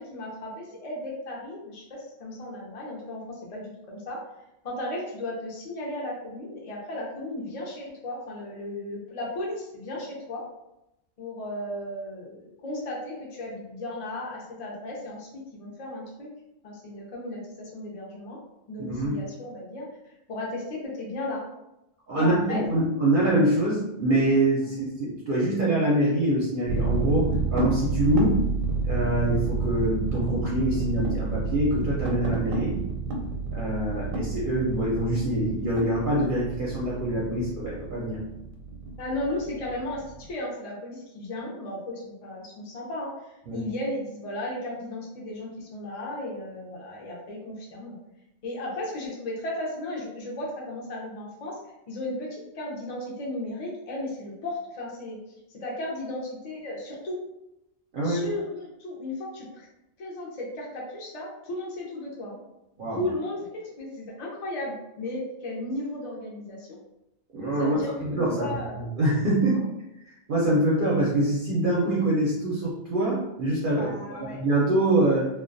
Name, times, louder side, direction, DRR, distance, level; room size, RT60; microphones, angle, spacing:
voice 1, 0.0-4.2 4.6-10.4 11.2-16.3 16.6-18.4 18.7-21.5 22.1-22.7 24.6-24.7 39.0-48.0 48.4-51.6 51.9-55.2 55.5-57.2 58.0-59.7 60.0-62.4 62.9-66.8 67.6-68.8 69.5-69.6 73.7-74.4, left 1 dB, 60° left, -3 dB, 0.4 m, -35 dB
voice 2, 18.8-19.2 22.1-28.4 28.8-32.8 33.5-38.2 43.5-43.6 57.9-58.3 62.8-63.0 67.3-68.5 68.8-69.7 70.3-75.3, right 1 dB, 60° right, -6 dB, 0.6 m, -25 dB
sound 1, 26.7-40.3, right 4 dB, 90° right, 1.0 m, -29 dB
2.2 x 2.2 x 2.5 m, 0.89 s
omnidirectional pair, 1.3 m